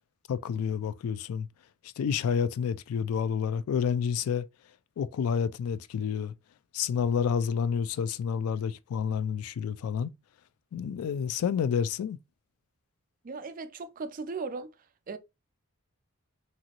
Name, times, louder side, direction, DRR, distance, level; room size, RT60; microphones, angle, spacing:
voice 1, 0.3-1.5 1.8-4.5 5.0-6.3 6.7-10.1 10.7-12.2, left 7 dB, 85° left, 0.3 m, -29 dB
voice 2, 13.2-14.7 15.1-15.2, right 4 dB, 40° right, 0.4 m, -37 dB
2.9 x 2.6 x 2.8 m
head